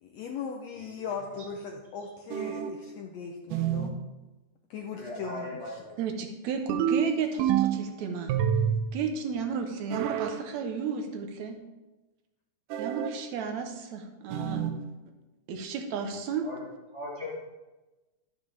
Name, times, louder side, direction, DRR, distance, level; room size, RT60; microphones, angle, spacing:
voice 1, 0.0-3.9 4.7-5.5, left 6 dB, 75° left, 2 dB, 1.6 m, -38 dB
voice 2, 0.7-1.5 4.9-6.0 16.4-16.6 16.9-17.3, left 1 dB, 60° left, -5 dB, 0.7 m, -40 dB
sound 1, 2.3-2.9 3.5-4.0 6.7-7.9 8.3-9.0 9.9-10.4 12.7-13.2 14.3-14.8, right 8 dB, 85° right, 2.2 m, -28 dB
voice 3, 6.0-8.4 8.9-11.6 12.8-14.6 15.5-16.5, right 6 dB, 70° right, 5 dB, 2.0 m, -33 dB
12.0 x 7.0 x 3.4 m, 1.1 s
omnidirectional pair, 3.7 m